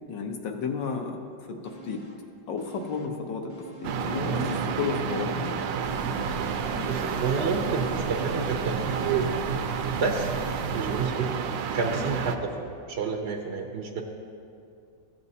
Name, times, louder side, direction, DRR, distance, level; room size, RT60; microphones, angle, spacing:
voice 1, 0.1-1.1 1.8-2.0 2.5-3.5 3.8-5.5, left 5 dB, 80° left, 3 dB, 1.5 m, -32 dB
sound 1, 1.6-2.3 2.6-4.1 4.4-8.8 9.1-9.2, right 4 dB, 25° left, 0.7 m, -49 dB
sound 2, 3.8-12.4, right 6 dB, 85° right, 1.3 m, -29 dB
sound 3, 5.8-11.1, left 1 dB, 55° left, 1.1 m, -41 dB
voice 2, 6.9-9.0 9.9-10.3 10.7-11.3 11.7-14.0, right 4 dB, 70° right, 2 dB, 0.6 m, -30 dB
15.0 x 8.6 x 2.7 m, 2.5 s
omnidirectional pair, 2.0 m